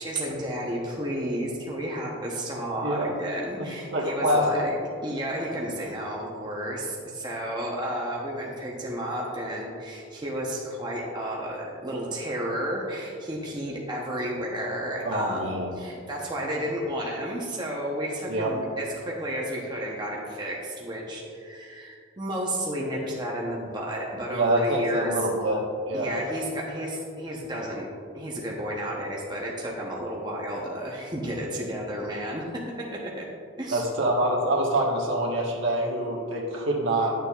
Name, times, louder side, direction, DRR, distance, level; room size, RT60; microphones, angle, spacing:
voice 1, 0.0-4.7 5.0-25.1 25.9-27.9 28.1-33.3 33.6-33.9, equal, 20° right, -3 dB, 0.8 m, -32 dB
voice 2, 3.9-4.6 15.0-15.8 18.3-18.5 24.3-26.1 33.7-37.1, right 1 dB, 70° right, -2 dB, 1.3 m, -25 dB
10.5 x 6.7 x 2.4 m, 2.3 s
head